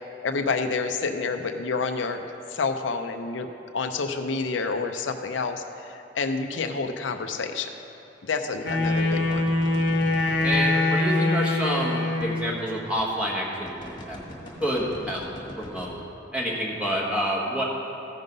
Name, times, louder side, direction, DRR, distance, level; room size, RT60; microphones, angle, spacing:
voice 1, 0.2-2.2 2.5-3.5 3.7-7.7 8.2-9.4, left 4 dB, 85° left, 6 dB, 0.6 m, -28 dB
Wind instrument woodwind instrument, 8.6-12.6, left 2 dB, 65° left, 1.0 m, -24 dB
sound 1, 8.7-10.8 11.8-11.9 12.2-12.3 13.0-13.2 13.7-15.9, left 1 dB, 25° left, 1.6 m, -40 dB
voice 2, 10.4-14.2 14.6-15.2 15.6-16.0 16.3-17.6, equal, 5° right, -5 dB, 1.4 m, -28 dB
15.0 x 5.4 x 5.3 m, 2.8 s
head